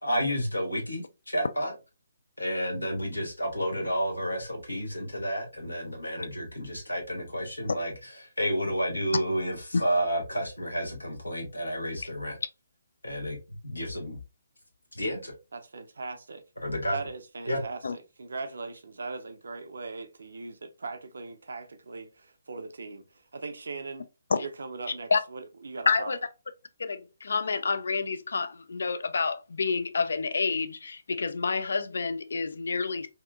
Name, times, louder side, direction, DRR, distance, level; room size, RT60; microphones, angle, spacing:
voice 1, 0.0-1.7 2.4-12.4 13.0-14.2 14.9-15.3 16.6-17.0 17.5-17.6, equal, 80° left, 1.0 m, -31 dB
voice 2, 15.5-16.4 16.9-23.0 23.3-24.1 24.4-26.2, right 3 dB, 60° right, 0.5 m, -39 dB
voice 3, 25.9-26.2 26.8-33.1, left 4 dB, 55° left, 0.3 m, -28 dB
2.8 x 2.4 x 2.2 m
figure-of-eight pair, 140°, 0 cm